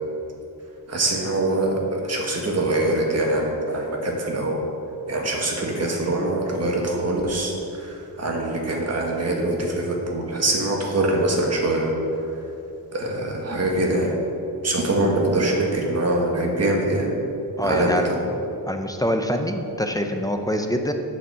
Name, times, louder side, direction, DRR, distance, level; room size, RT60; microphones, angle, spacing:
voice 1, 0.9-4.6 5.1-7.5 7.8-11.9 12.9-14.1 14.6-17.1 17.6-18.2, right 2 dB, 40° right, -1 dB, 1.7 m, -23 dB
voice 2, 17.6-18.1 18.6-20.9, equal, 10° left, 4 dB, 0.5 m, -25 dB
8.2 x 7.3 x 7.4 m, 2.8 s
wide cardioid pair, 170°, 41 cm